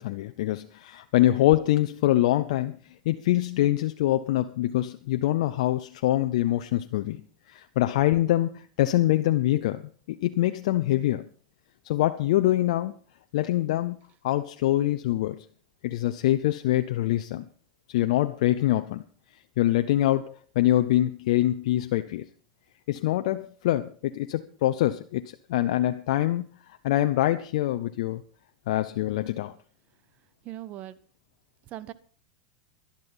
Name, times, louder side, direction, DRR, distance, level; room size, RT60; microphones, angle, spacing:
voice 1, 0.0-2.8 3.0-11.3 11.8-12.9 13.3-14.0 14.2-15.5 15.8-17.5 17.9-19.0 19.6-22.2 22.9-25.2 25.5-26.5 26.8-28.2 28.7-29.5, left 14 dB, 70° left, 9 dB, 0.7 m, -24 dB
voice 2, 30.4-31.0 31.7-31.9, right 13 dB, 40° right, 17 dB, 1.0 m, -39 dB
12.0 x 12.0 x 5.5 m, 0.42 s
hypercardioid pair, 115°, 4 cm